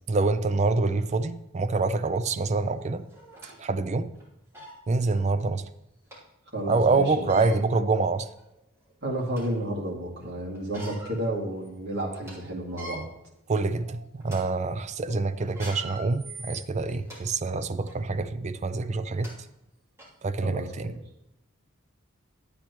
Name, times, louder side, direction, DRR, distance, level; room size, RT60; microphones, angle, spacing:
voice 1, 0.1-3.0 3.6-4.1 4.9-5.6 6.7-8.3 13.5-19.3 20.2-20.9, right 3 dB, 35° right, 12 dB, 0.4 m, -26 dB
sound 1, 2.4-2.5 3.1-3.6 4.1-4.2 4.5-4.8 6.1-6.2 7.1-7.6 8.3-8.4 8.9-9.6 10.5-11.2 11.6-11.7 12.1-12.3 12.7-13.0 13.6-13.8 14.2-14.4 15.4-17.2 17.8-18.0 18.8-18.9 19.2-19.3 20.0-20.1, right 1 dB, 15° right, 2.9 m, -43 dB
voice 2, 6.5-7.5 9.0-13.0 15.1-15.2 20.4-20.9, right 1 dB, 60° right, -2 dB, 2.3 m, -32 dB
11.5 x 8.3 x 3.0 m, 0.84 s
head